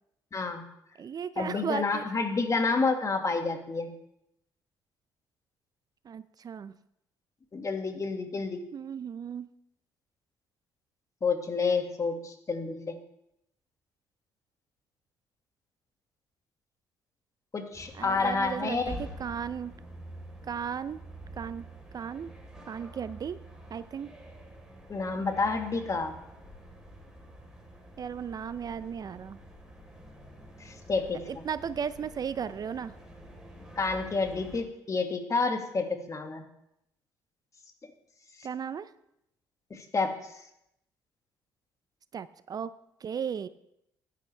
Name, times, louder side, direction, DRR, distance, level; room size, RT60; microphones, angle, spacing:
voice 1, 0.3-0.6 1.4-3.9 7.5-8.6 11.2-12.9 17.5-19.0 24.9-26.1 30.6-31.4 33.8-36.4 39.7-40.1, left 4 dB, 35° left, 5 dB, 2.0 m, -29 dB
voice 2, 1.0-2.0 6.1-6.8 8.7-9.5 18.0-19.7 20.5-21.0 21.4-21.6 21.9-22.3 22.7-23.4 23.7-24.1 28.0-29.4 31.3-32.9 38.4-38.9 42.1-42.7 43.0-43.5, right 7 dB, 45° right, 15 dB, 0.5 m, -35 dB
sound 1, 17.7-34.6, right 1 dB, 5° right, 4.0 m, -47 dB
15.5 x 10.5 x 3.4 m, 0.82 s
hypercardioid pair, 60°, 9 cm